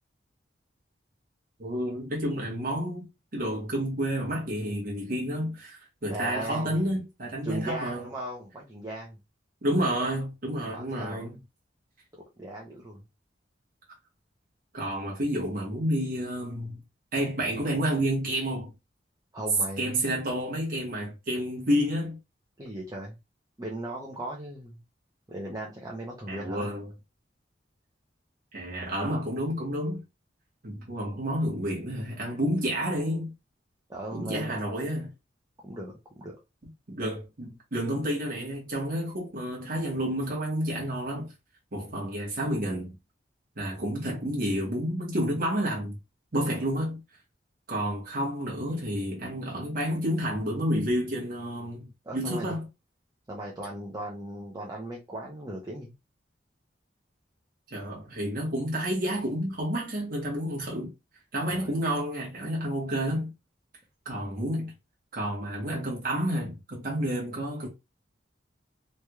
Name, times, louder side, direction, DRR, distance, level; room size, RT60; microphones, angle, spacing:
voice 1, 1.6-3.1 3.3-8.1 9.6-11.4 14.7-16.8 17.1-18.7 19.8-22.2 26.3-26.9 28.5-30.0 30.6-33.3 34.1-35.1 36.6-41.3 41.7-42.9 43.6-46.0 46.3-47.0 47.7-52.7 57.7-60.9 61.3-63.3 64.0-64.7 65.1-67.7, equal, 50° right, 1.0 m, -30 dB
voice 2, 6.1-6.9 7.4-9.2 10.7-11.3 12.1-13.0 19.3-20.0 22.6-23.1 23.6-24.8 25.3-26.7 33.9-34.6 35.6-36.3 52.0-52.5 53.3-55.9 61.5-61.7, right 1 dB, 20° right, 0.7 m, -37 dB
3.2 x 2.9 x 2.3 m
head